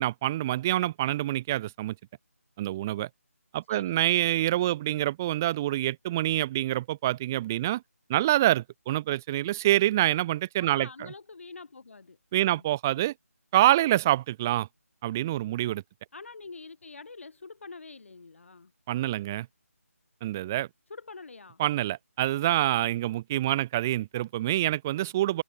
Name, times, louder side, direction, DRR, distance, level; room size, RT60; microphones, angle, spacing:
voice 1, 0.0-2.0 2.6-3.1 3.5-7.8 8.1-10.9 12.3-13.1 13.5-14.7 15.0-15.8 18.9-19.5 20.2-20.7 21.6-25.4, right 14 dB, 10° right, 0.6 m, -26 dB
voice 2, 10.6-12.6 16.1-18.7 20.9-21.6, left 4 dB, 55° left, 3.9 m, -45 dB
figure-of-eight pair, 170°, 8 cm